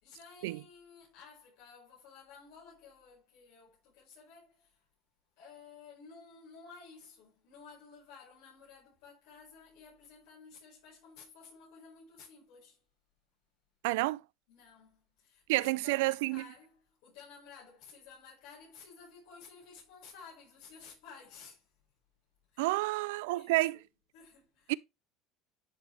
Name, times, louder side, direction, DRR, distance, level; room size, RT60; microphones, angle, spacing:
voice 1, 0.0-4.8 5.4-12.8 14.5-21.7 22.5-22.8 23.3-23.8 24.1-24.8, left 5 dB, 75° left, 5.4 m, -54 dB
voice 2, 13.8-14.2 15.5-16.4 22.6-23.8 24.7-24.8, right 20 dB, 85° right, 0.3 m, -29 dB
10.5 x 5.2 x 3.3 m
cardioid pair, 140°, 0 cm